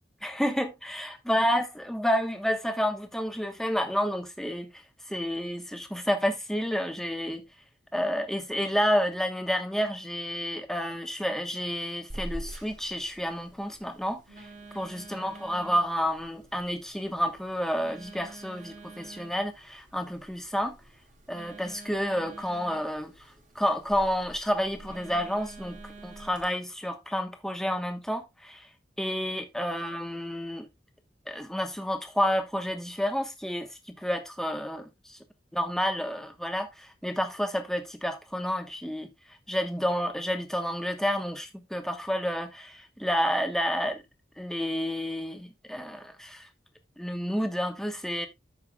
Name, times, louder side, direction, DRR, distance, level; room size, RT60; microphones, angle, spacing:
voice 1, 0.2-4.7 5.1-7.4 7.9-14.2 14.7-20.7 21.3-23.1 23.5-28.6 29.0-30.7 31.3-35.2 35.5-39.1 39.5-44.0 44.4-46.5 47.0-48.3, equal, 5° left, 1.1 m, -30 dB
Telephone, 12.1-26.5, right 2 dB, 45° right, 2.6 m, -46 dB
13.5 x 5.7 x 2.3 m
head